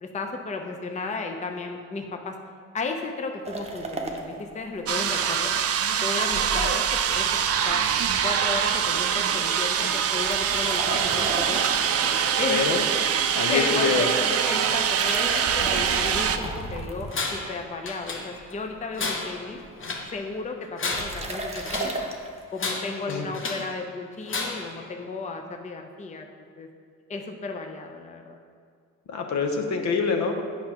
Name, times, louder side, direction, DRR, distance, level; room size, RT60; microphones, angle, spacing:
voice 1, 0.0-2.4 2.7-5.5 6.0-7.8 8.2-11.7 12.4-12.7 13.5-19.6 20.1-22.1 22.5-26.3 26.6-26.7 27.1-28.4, left 3 dB, 25° left, 4 dB, 0.6 m, -34 dB
sound 1, 3.5-5.3 5.6-5.7 6.3-9.2 9.5-9.8 10.2-13.5 14.7-17.7 18.2-18.7 19.0-19.1 19.3-19.9 20.9-22.3, right 2 dB, 20° right, 0.8 m, -35 dB
sound 2, 4.9-16.4, right 8 dB, 50° right, 0.5 m, -24 dB
voice 2, 12.5-12.8 13.3-14.1 23.1-23.3 29.1-30.4, left 5 dB, 65° left, 4 dB, 0.8 m, -25 dB
Tools, 17.1-17.6 17.9-18.6 18.9-20.1 20.6-22.0 22.6-23.7 24.3-24.8, left 3 dB, 40° left, 1.0 m, -32 dB
8.5 x 5.7 x 2.9 m, 2.2 s
cardioid pair, 90°, 30 cm